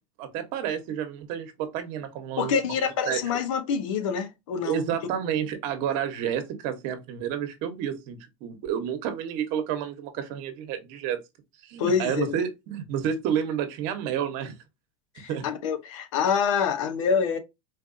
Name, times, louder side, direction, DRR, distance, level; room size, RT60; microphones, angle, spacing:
voice 1, 0.2-2.5 3.1-3.2 4.6-11.2 11.6-14.5 15.3-15.4, right 9 dB, 55° right, 1.1 m, -30 dB
voice 2, 2.4-4.8 11.8-12.3 15.1-17.4, left 6 dB, 85° left, 0.9 m, -26 dB
4.2 x 2.6 x 2.6 m
supercardioid pair, 135°, 16 cm